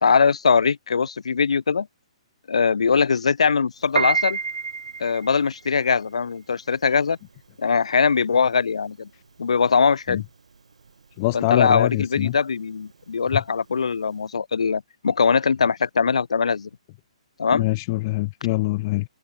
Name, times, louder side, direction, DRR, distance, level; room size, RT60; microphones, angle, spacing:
voice 1, 0.0-1.9 2.5-4.4 5.0-7.2 7.6-9.1 9.4-10.2 11.3-16.7 17.4-17.7, left 5 dB, 70° left, 1.3 m, -21 dB
Piano, 3.8-14.2, right 5 dB, 75° right, 0.9 m, -31 dB
voice 2, 11.2-12.3 17.5-19.0, left 21 dB, 35° left, 0.4 m, -24 dB
figure-of-eight pair, 125°, 3 cm